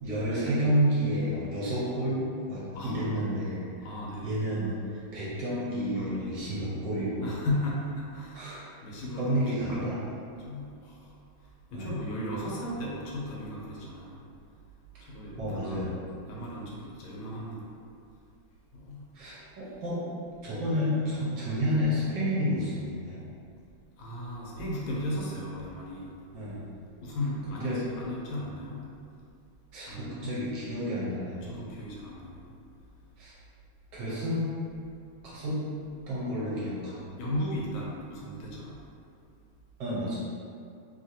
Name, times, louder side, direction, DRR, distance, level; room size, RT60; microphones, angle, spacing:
voice 1, 0.0-2.2 2.5-3.9 4.2-7.3 8.3-8.6 9.2-10.0 11.7-12.0 15.4-16.0 16.4-16.5 19.1-20.0 20.4-23.2 26.3-26.7 27.5-27.8 29.7-31.4 33.2-33.3 33.9-34.5 35.2-35.6 36.1-37.3 39.8-40.2, equal, 70° right, -8 dB, 1.2 m, -30 dB
voice 2, 2.7-3.2 3.8-4.3 6.0-6.4 7.2-8.4 8.8-9.3 9.7-10.1 10.4-11.0 11.7-14.2 15.1-17.7 18.7-19.1 24.0-26.1 27.0-28.9 29.9-30.4 31.5-32.5 37.2-38.8, left 1 dB, 85° left, -4 dB, 1.5 m, -36 dB
3.2 x 2.4 x 2.7 m, 2.5 s
omnidirectional pair, 2.2 m